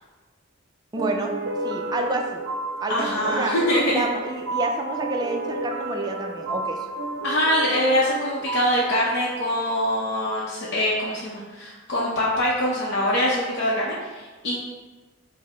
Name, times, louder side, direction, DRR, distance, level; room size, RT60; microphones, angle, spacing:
voice 1, 0.9-1.3 1.6-2.4 2.8-3.5 3.9-6.8, right 2 dB, 20° right, 2 dB, 0.4 m, -29 dB
sound 1, 1.0-10.2, right 2 dB, 90° right, 0.5 m, -31 dB
voice 2, 2.9-4.1 7.2-14.6, equal, 60° left, -7 dB, 0.6 m, -24 dB
4.6 x 2.0 x 4.2 m, 1.3 s
head